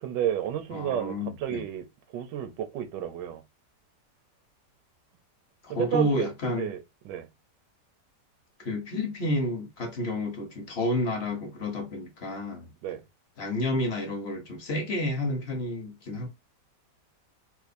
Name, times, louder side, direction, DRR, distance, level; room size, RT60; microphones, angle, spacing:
voice 1, 0.0-3.4 5.7-6.8 7.0-7.3 12.8-13.0, right 10 dB, 90° right, 1.3 m, -31 dB
voice 2, 0.7-1.6 5.6-6.7 8.6-12.7 13.4-16.3, left 1 dB, 50° left, 0.9 m, -30 dB
4.1 x 2.5 x 2.5 m
omnidirectional pair, 1.8 m